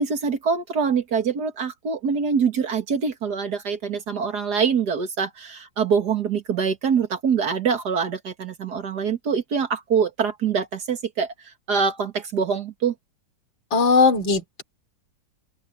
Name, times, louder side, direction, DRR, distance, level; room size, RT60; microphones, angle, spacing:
voice 1, 0.0-11.3 11.7-12.9, right 6 dB, 60° right, 2.3 m, -24 dB
voice 2, 13.7-14.6, left 4 dB, 85° left, 3.8 m, -19 dB
open air
omnidirectional pair, 2.0 m